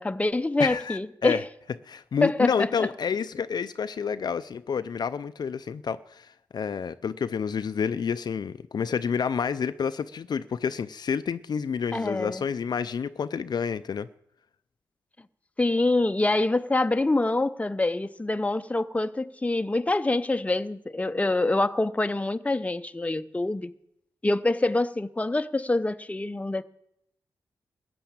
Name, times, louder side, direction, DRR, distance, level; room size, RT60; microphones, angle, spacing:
voice 1, 0.0-1.4 2.2-2.9 11.9-12.4 15.6-23.7 24.2-26.6, left 2 dB, 15° left, 0.6 m, -25 dB
voice 2, 0.6-1.4 1.8-14.1, left 6 dB, 60° left, 0.5 m, -29 dB
15.0 x 6.9 x 8.7 m
cardioid pair, 50°, 8 cm